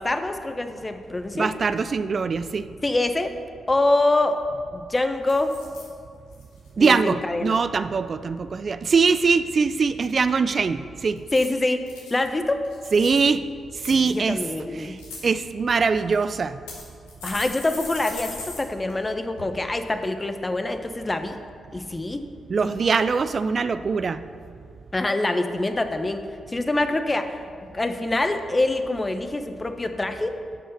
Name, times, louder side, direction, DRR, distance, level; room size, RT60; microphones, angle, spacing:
voice 1, 0.0-1.5 2.8-3.4 3.7-4.4 4.7-5.6 6.8-7.6 11.3-11.8 12.1-12.6 14.0-14.9 17.2-21.4 21.7-22.2 24.9-27.4 27.6-30.4, left 2 dB, 25° left, 8 dB, 1.0 m, -25 dB
voice 2, 1.3-2.7 6.8-11.2 12.9-13.4 13.8-14.4 14.7-15.0 15.2-16.6 22.5-24.2, right 5 dB, 50° right, 12 dB, 0.4 m, -22 dB
sound 1, 4.1-4.2 4.5-4.8 5.3-5.9 6.3-6.7 11.2-12.1 12.6-13.3 13.8-14.5 14.8-15.2 16.0-16.1 16.7-18.6 18.9-19.0 19.4-19.5, left 3 dB, 90° left, 2.0 m, -39 dB
11.0 x 5.5 x 6.7 m, 2.2 s
hypercardioid pair, 40°, 0 cm